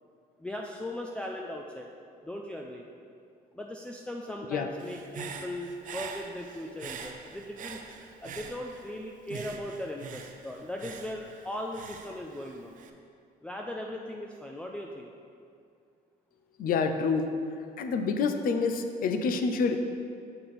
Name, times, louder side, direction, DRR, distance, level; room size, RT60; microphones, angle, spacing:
voice 1, 0.4-1.9 2.2-2.8 3.5-7.8 8.2-12.7 13.4-15.1, left 1 dB, 5° left, 0 dB, 0.4 m, -38 dB
Human voice / Breathing, 4.8-9.0 9.3-12.9, right 6 dB, 50° right, 0.6 m, -44 dB
voice 2, 16.6-17.2 17.8-19.8, left 4 dB, 55° left, 7 dB, 0.6 m, -27 dB
6.7 x 5.8 x 4.3 m, 2.4 s
cardioid pair, 110°, 17 cm